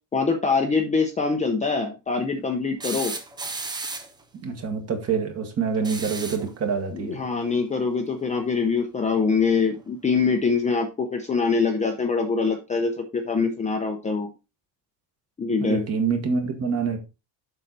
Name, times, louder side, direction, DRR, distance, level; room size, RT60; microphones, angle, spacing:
voice 1, 0.1-3.1 6.9-14.3 15.4-15.8, left 4 dB, 15° left, 0.7 m, -24 dB
sound 1, 2.8-4.2 5.7-6.5 8.2-8.3 9.7-9.8, right 3 dB, 10° right, 0.3 m, -34 dB
voice 2, 4.4-7.2 15.6-17.0, right 5 dB, 30° right, 1.6 m, -26 dB
7.6 x 5.7 x 4.0 m
cardioid pair, 175°, 47 cm